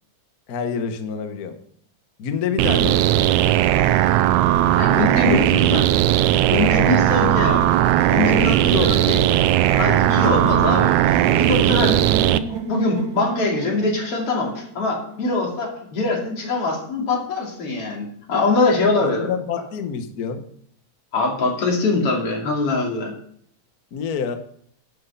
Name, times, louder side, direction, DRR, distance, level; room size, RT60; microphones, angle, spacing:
voice 1, 0.5-1.6 2.2-3.2 5.2-5.9 8.6-9.1 10.1-10.8 19.2-20.4 23.9-24.3, left 6 dB, 75° left, 8 dB, 0.8 m, -27 dB
sound 1, 2.6-12.4, right 13 dB, 85° right, 1.9 m, -17 dB
voice 2, 4.7-5.8 6.5-7.8 8.1-9.2 9.8-12.1 12.7-19.3 21.1-23.1, left 3 dB, 50° left, -1 dB, 3.5 m, -23 dB
sound 2, 11.7-15.6, right 4 dB, 55° right, 1.4 m, -32 dB
11.0 x 7.7 x 5.6 m, 0.64 s
omnidirectional pair, 3.3 m